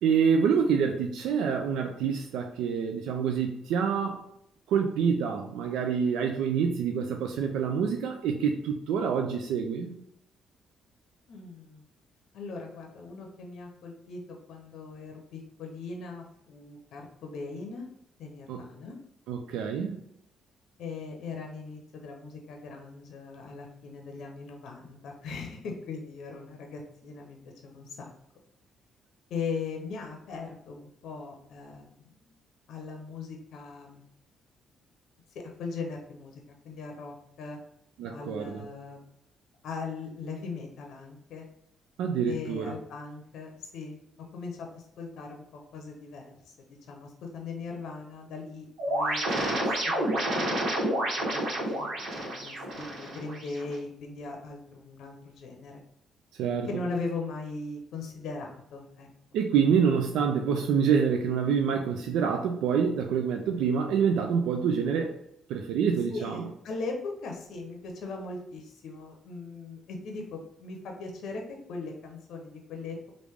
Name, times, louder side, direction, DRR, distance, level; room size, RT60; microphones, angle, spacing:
voice 1, 0.0-4.3 4.7-10.0 18.5-18.7 19.3-20.0 38.0-38.6 42.0-42.7 56.4-56.7 59.3-65.2 65.5-66.5, right 6 dB, 90° right, 4 dB, 0.3 m, -27 dB
voice 2, 11.3-11.8 12.3-17.9 18.2-19.0 20.8-28.1 29.3-32.3 32.7-34.0 35.3-37.6 38.1-39.0 39.6-41.4 42.3-44.0 44.3-49.5 49.8-50.7 51.2-55.8 56.7-59.1 66.1-71.4 71.7-73.1, left 4 dB, 75° left, 2 dB, 0.6 m, -39 dB
sound 1, 48.8-53.8, right 1 dB, 75° right, 1.2 m, -29 dB
3.1 x 2.5 x 3.4 m, 0.75 s
cardioid pair, 90°, 0 cm